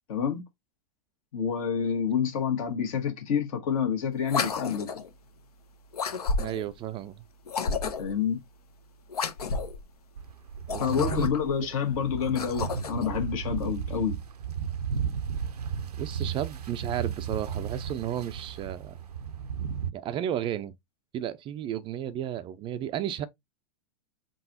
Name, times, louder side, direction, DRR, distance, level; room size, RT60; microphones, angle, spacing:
voice 1, 0.1-0.4 1.3-4.9 8.0-8.4 10.8-14.1, left 7 dB, 60° left, 1.5 m, -28 dB
sound 1, 4.2-5.1 5.9-6.7 7.5-8.2 9.1-9.8 10.6-11.5 12.2-13.1, left 4 dB, 80° left, 0.7 m, -31 dB
voice 2, 6.4-7.1 10.7-11.3 16.0-19.0 19.9-20.7 21.1-23.3, right 11 dB, 25° right, 0.4 m, -33 dB
sound 2, 10.2-19.9, right 7 dB, 85° right, 0.5 m, -34 dB
3.9 x 3.8 x 2.7 m
hypercardioid pair, 100°, 19 cm